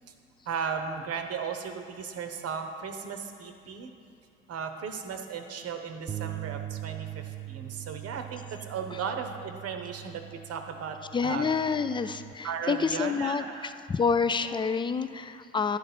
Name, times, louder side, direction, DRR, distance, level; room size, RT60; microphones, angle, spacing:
voice 1, 0.5-3.9 4.5-11.5 12.4-13.7, right 6 dB, 55° right, 6 dB, 0.9 m, -36 dB
sound 1, 6.1-12.3, right 14 dB, 35° right, 0.5 m, -41 dB
voice 2, 11.1-13.4 13.9-15.8, left 5 dB, 15° left, 11 dB, 0.4 m, -28 dB
10.5 x 4.0 x 5.8 m, 2.5 s
hypercardioid pair, 45°, 29 cm